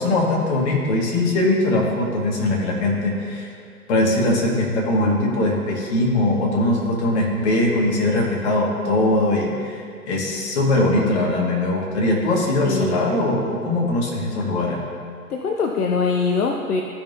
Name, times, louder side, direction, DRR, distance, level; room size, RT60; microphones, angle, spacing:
voice 1, 0.0-3.5 3.9-14.8, left 1 dB, 45° left, -2 dB, 2.0 m, -21 dB
voice 2, 12.6-13.1 15.3-16.8, left 5 dB, 70° left, 2 dB, 0.8 m, -22 dB
14.0 x 5.6 x 2.7 m, 2.4 s
figure-of-eight pair, 125°, 46 cm